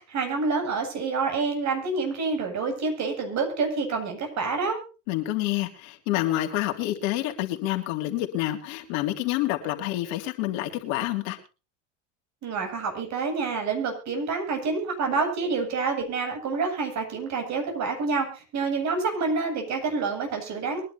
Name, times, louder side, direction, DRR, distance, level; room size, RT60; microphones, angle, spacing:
voice 1, 0.0-4.8 12.4-20.8, right 4 dB, 45° right, 4 dB, 7.9 m, -28 dB
voice 2, 5.1-11.4, left 15 dB, 65° left, 4 dB, 3.4 m, -28 dB
23.5 x 11.0 x 2.8 m, 0.33 s
hypercardioid pair, 95°, 39 cm